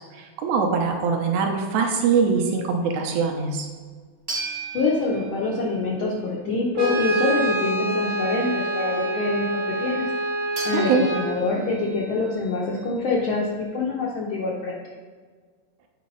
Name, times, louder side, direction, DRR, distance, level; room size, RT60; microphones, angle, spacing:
voice 1, 0.1-3.7 10.7-11.0, right 5 dB, 80° right, 3 dB, 2.1 m, -22 dB
sound 1, 4.3-6.3 10.6-13.6, right 3 dB, 25° right, 0.4 m, -37 dB
voice 2, 4.7-10.1 10.6-14.8, left 3 dB, 85° left, -3 dB, 1.1 m, -25 dB
Brass instrument, 6.7-11.3, right 2 dB, 60° right, 0.9 m, -26 dB
8.4 x 3.1 x 5.4 m, 1.5 s
omnidirectional pair, 3.3 m